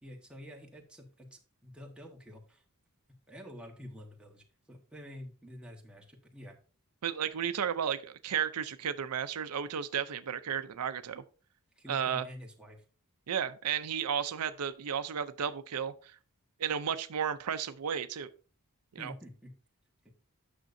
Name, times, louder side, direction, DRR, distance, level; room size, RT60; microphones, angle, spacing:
voice 1, 0.0-2.6 3.3-6.6 11.8-12.8 19.0-19.5, left 1 dB, 5° right, 1.4 m, -48 dB
voice 2, 7.0-11.2 11.9-12.3 13.3-16.1 16.6-18.3 18.9-19.1, right 8 dB, 90° right, 0.5 m, -33 dB
9.0 x 6.5 x 2.6 m
head